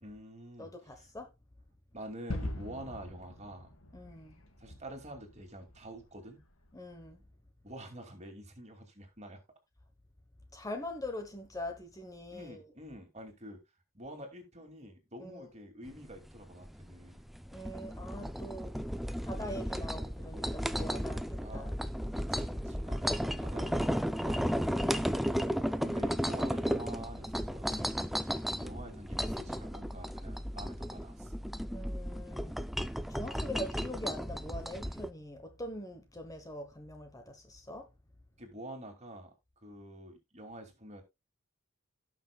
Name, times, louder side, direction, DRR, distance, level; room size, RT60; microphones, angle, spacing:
voice 1, 0.0-0.7 1.9-3.7 4.6-6.4 7.6-9.4 12.3-13.6 13.9-17.2 21.4-21.7 22.1-24.6 25.6-31.3 38.4-39.3 39.6-41.0, right 1 dB, 35° right, 2.5 m, -47 dB
voice 2, 0.6-1.3 3.9-4.4 6.7-7.3 10.5-12.7 15.2-15.5 17.5-18.8 19.2-21.8 31.6-32.6 33.1-37.9, left 1 dB, 15° left, 1.1 m, -43 dB
Gunshot gunfire / Fireworks / Boom, 2.3-7.1, left 1 dB, 85° left, 2.2 m, -43 dB
sound 1, 15.9-35.1, equal, ahead, 0.4 m, -34 dB
17.0 x 6.1 x 2.3 m
head